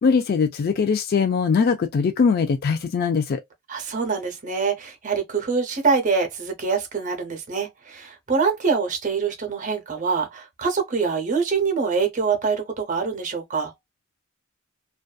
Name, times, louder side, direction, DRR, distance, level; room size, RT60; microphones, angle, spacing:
voice 1, 0.0-3.4, left 5 dB, 45° left, 0.3 m, -21 dB
voice 2, 3.7-13.7, right 5 dB, 40° right, 0.7 m, -24 dB
2.5 x 2.3 x 2.2 m
head